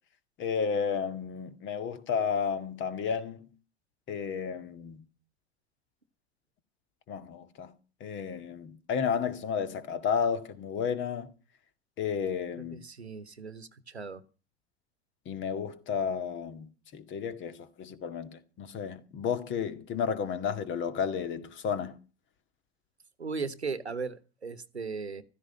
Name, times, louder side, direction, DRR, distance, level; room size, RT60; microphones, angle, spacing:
voice 1, 0.4-3.5 4.1-5.0 7.1-7.7 8.0-11.3 12.0-12.8 15.3-22.0, left 6 dB, 35° left, 1.9 m, -32 dB
voice 2, 12.7-14.2 23.2-25.2, right 4 dB, 85° right, 1.2 m, -37 dB
15.5 x 13.5 x 5.6 m
figure-of-eight pair, 80°, 32 cm